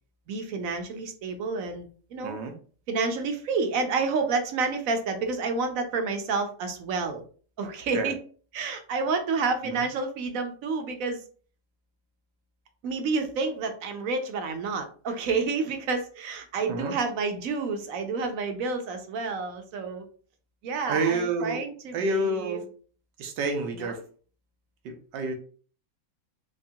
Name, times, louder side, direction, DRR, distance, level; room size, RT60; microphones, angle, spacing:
voice 1, 0.3-2.4 2.9-7.2 7.6-8.2 8.5-11.2 12.8-20.1 20.6-22.6 23.7-24.0, right 4 dB, 65° right, 6 dB, 0.9 m, -29 dB
voice 2, 2.2-2.6 7.9-8.1 9.6-9.8 16.7-16.9 20.9-21.6 21.9-22.6 23.2-24.0 24.8-25.3, right 2 dB, 90° right, 5 dB, 1.5 m, -29 dB
3.6 x 3.2 x 2.7 m, 0.41 s
omnidirectional pair, 1.8 m